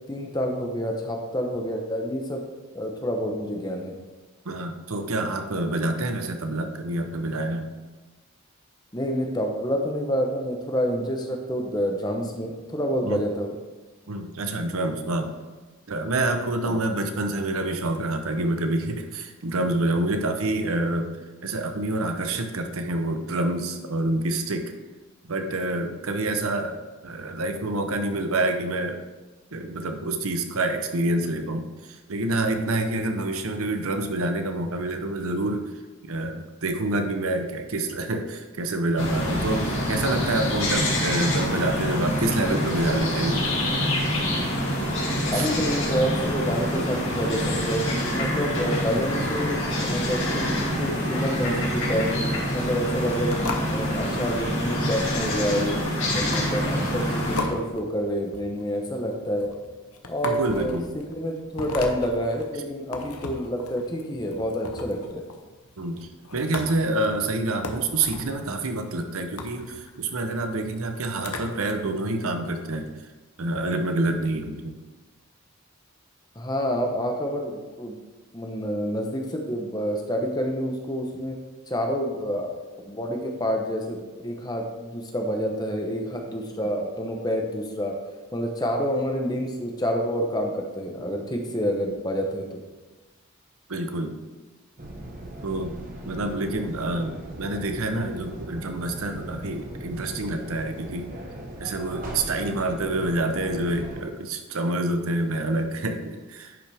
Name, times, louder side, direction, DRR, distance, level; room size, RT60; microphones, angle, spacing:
voice 1, 0.1-2.4 2.7-3.9 8.9-13.5 16.6-16.8 45.3-52.1 52.5-55.7 56.1-59.5 60.1-65.3 76.4-78.0 78.3-81.4 81.7-82.6 82.9-88.0 88.3-92.6, equal, 20° left, 2 dB, 0.9 m, -28 dB
voice 2, 4.4-7.7 13.1-13.2 14.1-15.3 15.9-21.1 21.4-24.7 25.2-29.0 29.5-35.7 36.1-43.5 45.3-45.5 60.2-60.9 65.8-72.9 73.4-74.8 93.7-94.2 95.4-95.8 96.1-101.1 101.6-106.6, right 2 dB, 70° right, 6 dB, 0.8 m, -27 dB
sound 1, 39.0-57.4, equal, 55° left, 2.7 m, -26 dB
sound 2, 53.3-71.7, left 3 dB, 80° left, 0.9 m, -38 dB
sound 3, 94.8-104.0, right 1 dB, 40° right, 1.2 m, -39 dB
10.5 x 5.7 x 3.5 m, 1.2 s
head